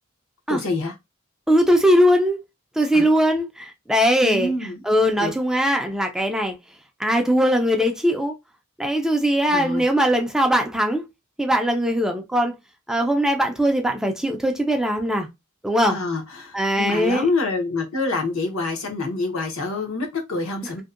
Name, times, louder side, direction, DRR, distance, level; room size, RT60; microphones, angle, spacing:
voice 1, 0.5-0.9 2.9-3.1 4.2-4.8 5.2-5.3 9.5-9.8 15.8-20.8, left 3 dB, 70° left, 0.8 m, -26 dB
voice 2, 1.5-2.4 2.8-4.5 4.8-6.6 7.0-8.3 8.8-11.0 11.4-12.5 12.9-15.3 15.6-16.0 16.5-17.3, equal, 5° right, 0.3 m, -20 dB
2.6 x 2.1 x 2.4 m
head